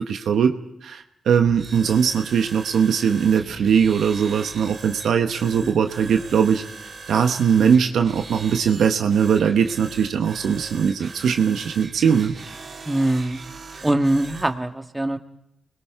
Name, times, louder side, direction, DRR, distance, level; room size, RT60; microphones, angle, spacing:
voice 1, 0.0-6.6 7.1-12.4, right 7 dB, 80° right, 6 dB, 1.0 m, -20 dB
sound 1, 1.5-14.5, right 4 dB, 60° right, 3.3 m, -40 dB
voice 2, 12.8-13.4 13.8-15.2, right 1 dB, 15° right, 6 dB, 1.6 m, -22 dB
28.5 x 21.0 x 4.7 m, 0.81 s
supercardioid pair, 50°, 0 cm